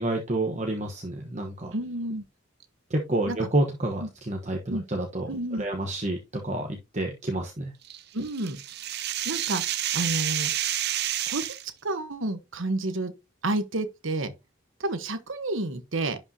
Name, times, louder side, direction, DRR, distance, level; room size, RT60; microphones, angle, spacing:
voice 1, 0.0-1.7 2.9-5.3 5.6-7.7, right 1 dB, 35° right, 1.1 m, -29 dB
voice 2, 1.7-2.2 3.3-3.5 4.0-4.1 4.7-4.8 5.3-5.6 8.1-8.6 9.2-9.6 9.9-10.5 11.3-11.6 11.8-13.1 13.4-14.3 14.8-16.2, right 2 dB, 70° right, 1.1 m, -30 dB
sound 1, 7.9-11.7, right 12 dB, 50° right, 0.5 m, -29 dB
11.0 x 5.3 x 2.8 m
head